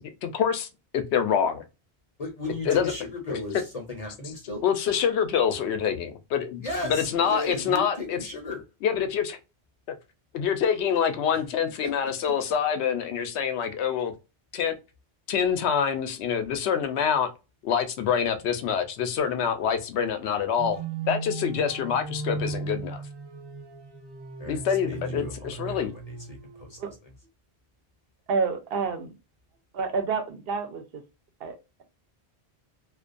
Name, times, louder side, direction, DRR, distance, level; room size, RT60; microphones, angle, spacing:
voice 1, 0.2-0.7 0.9-1.6 2.7-2.9 4.6-6.6 6.9-8.2 8.8-9.4 10.3-14.1 14.5-14.8 15.3-17.3 17.6-20.8 21.1-23.0 24.5-25.9, left 7 dB, 80° left, 0.8 m, -26 dB
voice 2, 2.2-4.6 6.6-8.6 11.3-11.4 11.8-11.9 12.2-12.3 24.4-27.1, left 2 dB, 40° left, 0.6 m, -36 dB
sound 1, 20.6-26.8, right 4 dB, 40° right, 0.3 m, -36 dB
voice 3, 28.3-29.1 29.7-31.0 31.4-31.8, right 5 dB, 65° right, 0.8 m, -29 dB
2.3 x 2.2 x 2.5 m
omnidirectional pair, 1.1 m